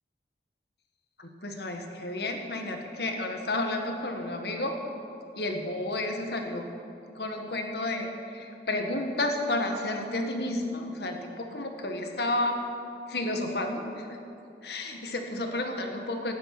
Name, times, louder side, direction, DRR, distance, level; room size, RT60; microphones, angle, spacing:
voice 1, 1.2-4.8 5.4-6.6 7.1-12.6 13.1-14.2 14.6-16.3, left 2 dB, 65° left, 4 dB, 1.5 m, -31 dB
16.0 x 10.5 x 6.1 m, 2.7 s
head